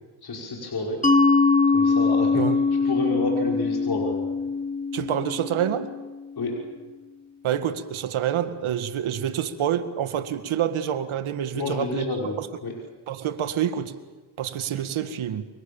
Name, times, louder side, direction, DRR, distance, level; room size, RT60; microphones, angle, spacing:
voice 1, 0.2-1.0 1.7-2.4 2.8-4.3 6.4-6.8 11.5-12.7, left 2 dB, 50° left, 0 dB, 5.8 m, -29 dB
Mallet percussion, 1.0-6.4, left 4 dB, 15° left, 2.7 m, -22 dB
voice 2, 4.9-5.9 7.4-12.0 12.4-12.5 13.1-14.0 14.4-15.5, right 10 dB, 75° right, 11 dB, 2.0 m, -27 dB
29.5 x 24.5 x 7.2 m, 1.2 s
cardioid pair, 85°, 49 cm